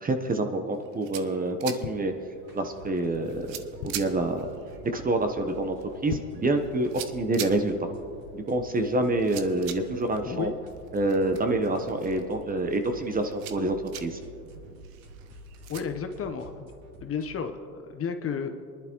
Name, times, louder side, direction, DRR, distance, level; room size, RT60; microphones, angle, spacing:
voice 1, 0.0-2.1 2.5-3.5 3.8-4.5 4.9-5.8 6.0-7.8 8.3-10.5 10.9-14.2, right 2 dB, 20° right, 6 dB, 1.0 m, -27 dB
sound 1, 0.7-15.8, right 11 dB, 60° right, 1.0 m, -45 dB
sound 2, 1.8-2.8 3.3-3.4 3.5-4.3 4.8-5.0 5.3-5.4 5.9-6.6 7.0-7.1, left 12 dB, 60° left, 0.8 m, -39 dB
sound 3, 2.4-17.3, equal, 40° right, 3.3 m, -48 dB
voice 2, 10.2-10.5 15.7-16.7 17.0-18.6, left 6 dB, 30° left, 6 dB, 1.0 m, -32 dB
23.0 x 11.5 x 3.1 m, 2.4 s
hypercardioid pair, 90°, 46 cm